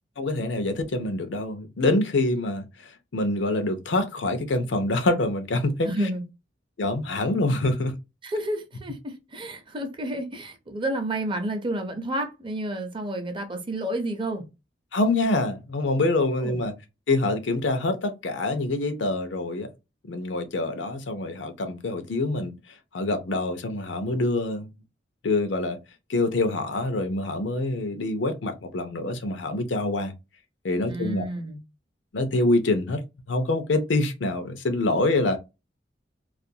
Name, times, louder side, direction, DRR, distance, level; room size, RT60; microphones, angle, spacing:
voice 1, 0.2-5.9 6.8-7.9 14.9-16.7 17.1-19.7 20.0-22.5 22.9-24.7 25.2-25.8 26.1-30.1 30.6-31.2 32.1-33.0 33.3-35.4, left 2 dB, 80° left, 0.6 m, -25 dB
voice 2, 5.8-6.2 8.2-14.5 16.4-16.6 30.9-31.6, right 1 dB, 30° right, 0.6 m, -30 dB
2.4 x 2.3 x 2.7 m
head